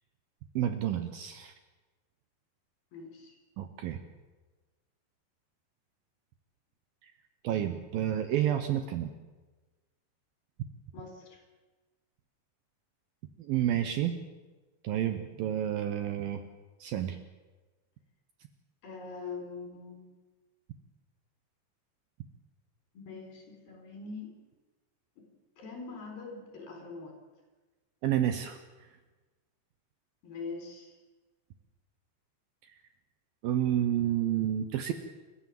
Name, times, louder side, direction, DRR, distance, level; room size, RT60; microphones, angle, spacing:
voice 1, 0.6-1.5 3.6-4.0 7.0-7.1 7.4-9.1 13.4-14.2 14.8-16.4 16.8-17.2 28.0-28.6 33.4-34.9, right 11 dB, 70° right, 8 dB, 2.4 m, -30 dB
voice 2, 2.9-3.3 10.9-11.4 18.8-20.0 22.9-24.3 25.2-25.3 25.6-27.2 30.2-30.9, left 4 dB, 60° left, 3 dB, 6.0 m, -43 dB
29.5 x 13.5 x 7.7 m, 1.3 s
omnidirectional pair, 5.1 m